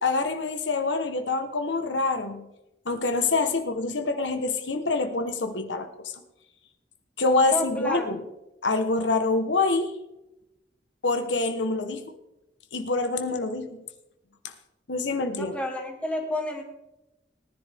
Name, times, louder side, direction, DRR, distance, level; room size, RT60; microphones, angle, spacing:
voice 1, 0.0-2.5 2.8-6.1 7.2-8.2 8.6-9.9 11.0-12.0 12.7-13.8 14.4-14.5 14.9-15.6, left 3 dB, 80° left, 6 dB, 1.2 m, -26 dB
voice 2, 7.4-8.1 15.3-16.6, left 1 dB, 5° left, 1 dB, 2.0 m, -31 dB
19.0 x 10.5 x 3.5 m, 0.92 s
head